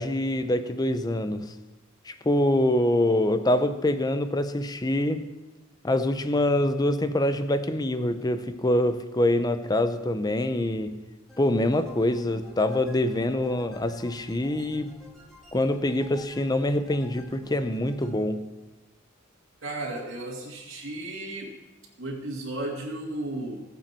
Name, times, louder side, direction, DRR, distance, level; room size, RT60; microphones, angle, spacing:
voice 1, 0.0-1.5 2.1-5.3 5.8-11.0 11.4-15.0 15.5-18.5, left 1 dB, 20° left, 10 dB, 0.6 m, -25 dB
sound 1, 11.3-18.1, left 1 dB, ahead, 2.6 m, -50 dB
voice 2, 19.6-21.5 22.0-23.6, right 2 dB, 65° right, -3 dB, 2.4 m, -34 dB
19.5 x 7.0 x 4.5 m, 1.1 s
head